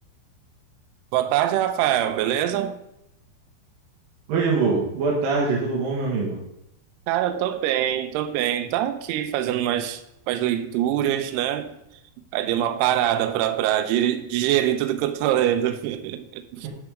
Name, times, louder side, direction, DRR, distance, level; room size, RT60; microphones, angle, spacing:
voice 1, 1.1-2.8 7.1-10.0 10.3-11.7 12.3-16.7, right 11 dB, 80° right, 2.4 m, -24 dB
voice 2, 4.3-6.4 16.6-16.7, right 4 dB, 65° right, 2.6 m, -23 dB
9.4 x 4.9 x 4.9 m
omnidirectional pair, 5.3 m